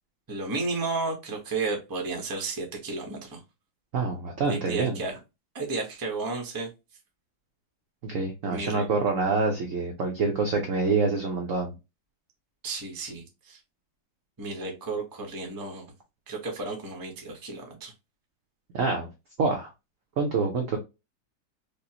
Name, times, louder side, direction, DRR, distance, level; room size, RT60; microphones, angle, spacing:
voice 1, 0.3-3.4 4.5-5.2 5.5-6.7 8.5-8.8 12.6-13.6 14.4-15.9 16.3-17.9, right 3 dB, 25° right, 0.4 m, -33 dB
voice 2, 3.9-5.0 8.0-11.7 18.7-19.1 19.4-19.7 20.2-20.8, right 4 dB, 75° right, 0.7 m, -26 dB
5.1 x 2.1 x 2.8 m
omnidirectional pair, 2.2 m